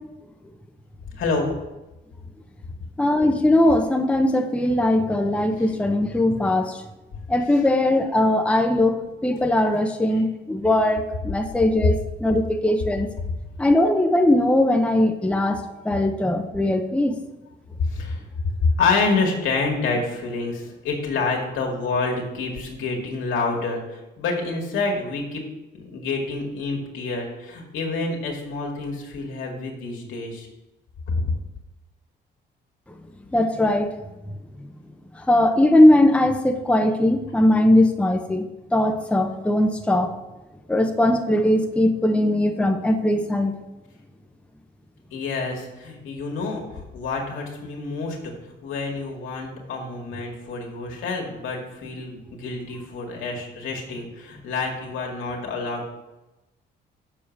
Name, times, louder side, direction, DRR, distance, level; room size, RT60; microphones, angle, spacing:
voice 1, 1.2-1.6 5.6-5.7 7.5-7.6 10.1-10.2 17.8-18.2 18.6-25.4 25.7-30.5 31.1-31.2 45.1-48.3 48.6-55.9, left 3 dB, 80° left, 0 dB, 2.0 m, -27 dB
voice 2, 3.0-6.8 7.3-13.1 13.6-17.2 33.3-33.9 35.3-38.4 38.7-40.1 40.7-43.5, left 1 dB, 5° left, 4 dB, 0.8 m, -20 dB
7.3 x 4.9 x 7.1 m, 1.0 s
cardioid pair, 90°, 20 cm